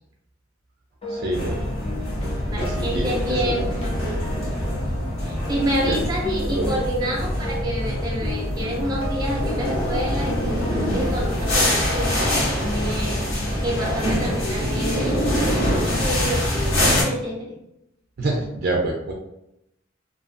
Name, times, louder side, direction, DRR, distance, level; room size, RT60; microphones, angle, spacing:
sound 1, 1.0-13.8, left 1 dB, 30° left, 0.5 m, -35 dB
voice 1, 1.1-1.6 2.6-3.1 3.5-3.6 5.8-6.0 6.5-6.7 18.2-19.1, right 2 dB, 50° right, -1 dB, 0.4 m, -26 dB
sound 2, 1.3-17.0, left 1 dB, 90° left, 1.0 m, -24 dB
voice 2, 2.5-4.2 4.5-17.6, equal, 20° right, -2 dB, 0.7 m, -29 dB
2.5 x 2.4 x 2.5 m, 0.83 s
head